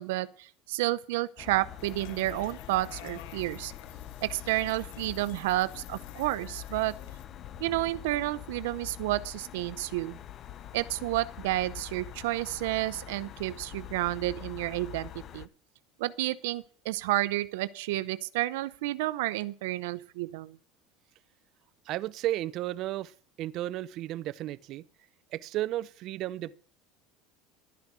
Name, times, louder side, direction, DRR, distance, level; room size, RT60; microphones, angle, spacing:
voice 1, 0.0-3.7 4.2-7.0 7.6-10.2 10.7-15.5 16.0-20.6, right 17 dB, 85° right, 0.7 m, -31 dB
sound 1, 1.4-15.5, left 11 dB, 40° left, 0.8 m, -45 dB
sound 2, 1.8-7.3, left 13 dB, 75° left, 1.2 m, -49 dB
voice 2, 21.9-23.1 23.4-24.8 25.3-26.5, right 14 dB, 50° right, 0.6 m, -33 dB
12.0 x 10.5 x 6.2 m
supercardioid pair, 130°, 0 cm